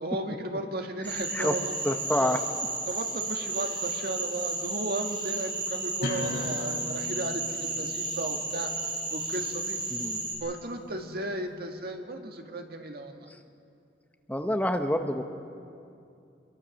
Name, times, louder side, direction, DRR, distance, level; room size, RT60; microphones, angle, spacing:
voice 1, 0.0-1.7 2.2-2.3 2.9-8.7 9.1-9.8 10.4-13.3, right 1 dB, 60° right, 4 dB, 1.9 m, -35 dB
Cricket / Frog, 1.0-10.3, right 3 dB, 30° right, 7.9 m, -33 dB
voice 2, 1.8-2.4 9.9-10.3 14.3-15.2, left 1 dB, 10° left, 5 dB, 0.9 m, -27 dB
sound 1, 6.0-11.4, left 2 dB, 65° left, 6.9 m, -40 dB
25.5 x 22.5 x 6.4 m, 2.6 s
head